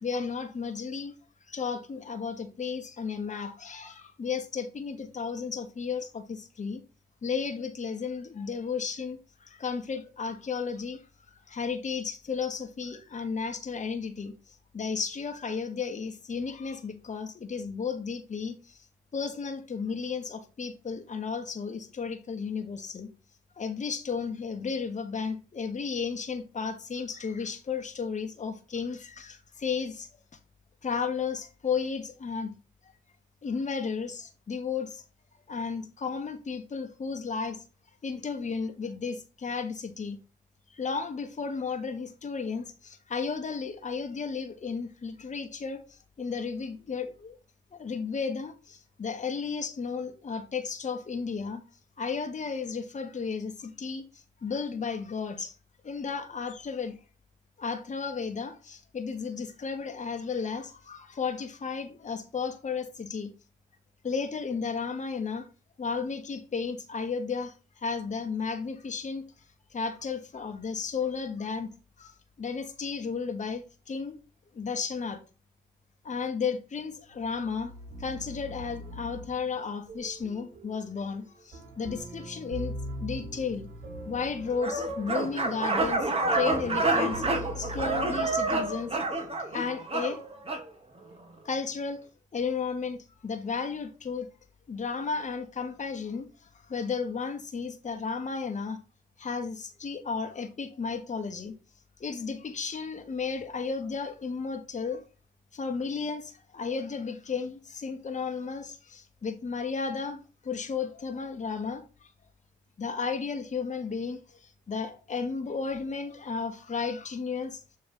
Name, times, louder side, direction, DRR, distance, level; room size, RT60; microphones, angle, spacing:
voice 1, 0.0-1.1 1.5-6.8 7.2-11.0 11.5-18.8 19.1-23.1 23.6-30.1 30.8-32.6 33.4-35.0 35.5-37.6 38.0-40.2 40.7-45.8 46.2-47.4 47.7-51.6 52.0-54.0 54.4-55.5 55.8-57.0 57.6-63.3 64.0-65.5 65.8-69.2 69.7-71.7 72.0-72.1 72.4-74.2 74.5-75.2 76.0-77.7 78.0-83.7 84.0-88.9 89.5-90.2 91.4-92.0 92.3-94.3 94.7-96.3 96.7-98.8 99.2-101.6 102.0-105.0 105.5-111.8 112.8-117.6, left 5 dB, 40° left, 1.4 m, -33 dB
sound 1, 77.1-89.2, right 1 dB, 55° right, 2.1 m, -42 dB
sound 2, 84.6-90.7, right 2 dB, 30° right, 1.9 m, -28 dB
7.2 x 3.4 x 5.2 m
supercardioid pair, 50°, 19 cm